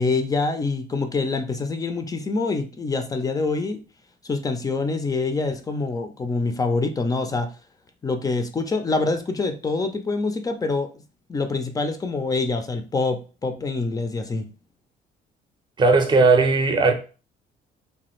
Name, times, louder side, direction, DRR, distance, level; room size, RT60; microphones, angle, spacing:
voice 1, 0.0-3.8 4.2-7.5 8.0-10.9 11.3-14.5, left 3 dB, 20° left, 0.4 m, -25 dB
voice 2, 15.8-16.9, right 3 dB, 25° right, 0.6 m, -17 dB
3.0 x 2.3 x 3.0 m
cardioid pair, 110°, 17 cm